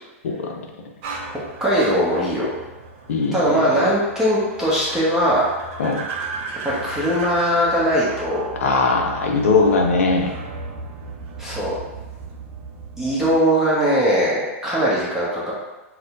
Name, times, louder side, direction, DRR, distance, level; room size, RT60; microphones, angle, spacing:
sound 1, 1.0-13.4, right 4 dB, 50° right, 0.6 m, -36 dB
voice 1, 1.6-2.5 3.3-5.4 6.6-8.5 11.4-11.7 13.0-15.5, equal, 5° right, -8 dB, 1.0 m, -20 dB
voice 2, 3.1-3.8 5.8-6.0 8.6-10.3, left 3 dB, 75° left, 1 dB, 0.6 m, -20 dB
4.1 x 2.2 x 2.5 m, 1.1 s
hypercardioid pair, 110°, 8 cm